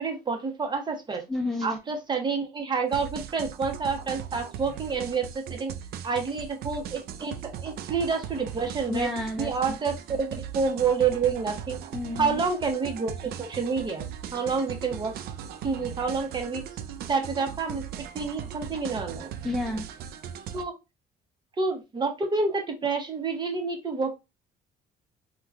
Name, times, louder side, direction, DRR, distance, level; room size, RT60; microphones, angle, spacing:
voice 1, 0.0-1.2 1.6-5.7 6.0-9.1 9.4-11.8 12.2-15.2 15.6-16.6 17.1-17.8 18.1-19.3 20.5-20.8 21.6-24.1, right 5 dB, 25° right, 0.8 m, -28 dB
voice 2, 1.3-1.8 8.9-9.8 11.9-12.4 19.4-19.9, left 2 dB, ahead, 0.4 m, -31 dB
sound 1, 2.9-20.6, right 9 dB, 65° right, 0.4 m, -39 dB
3.6 x 2.2 x 2.4 m
cardioid pair, 110°, 17 cm